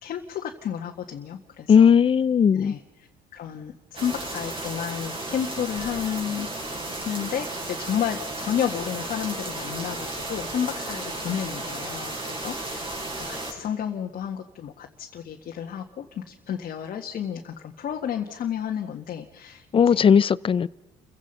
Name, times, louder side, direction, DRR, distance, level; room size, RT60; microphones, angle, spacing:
voice 1, 0.0-1.9 2.5-2.8 3.3-6.5 7.1-12.9 13.2-20.1, left 9 dB, 55° left, 1.7 m, -31 dB
voice 2, 1.7-2.7 19.7-20.7, left 7 dB, 30° left, 0.6 m, -17 dB
sound 1, 4.0-13.5, right 2 dB, 30° right, 6.4 m, -34 dB
29.5 x 16.0 x 5.5 m
cardioid pair, 110°, 17 cm